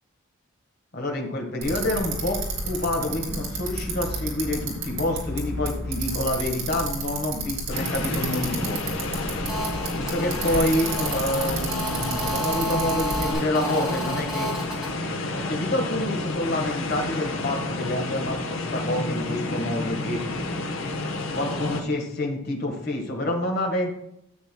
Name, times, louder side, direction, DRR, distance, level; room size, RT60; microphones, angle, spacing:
voice 1, 0.9-8.8 10.1-14.5 15.3-20.2 21.3-23.9, left 1 dB, 50° left, 2 dB, 1.6 m, -28 dB
Bicycle, 1.6-13.3, right 3 dB, 75° right, 2.7 m, -32 dB
sound 1, 7.7-21.8, left 2 dB, 70° left, 1.0 m, -30 dB
Telephone, 9.5-14.9, equal, 5° right, 2.5 m, -32 dB
12.5 x 8.0 x 2.3 m, 0.78 s
head